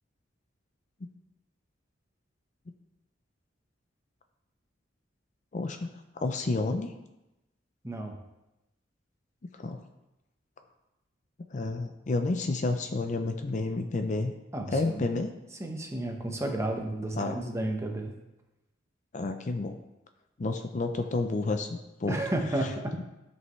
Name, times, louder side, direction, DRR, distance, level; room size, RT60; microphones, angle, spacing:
voice 1, 5.5-5.9 6.2-6.9 9.6-9.8 11.5-14.3 14.7-15.3 17.2-17.4 19.1-19.8 20.4-22.2 22.6-22.7, left 3 dB, 40° left, 7 dB, 0.5 m, -30 dB
voice 2, 7.8-8.2 14.5-15.1 15.6-18.1 22.1-22.9, right 1 dB, 15° right, 2 dB, 0.9 m, -32 dB
12.5 x 5.4 x 3.1 m, 0.97 s
head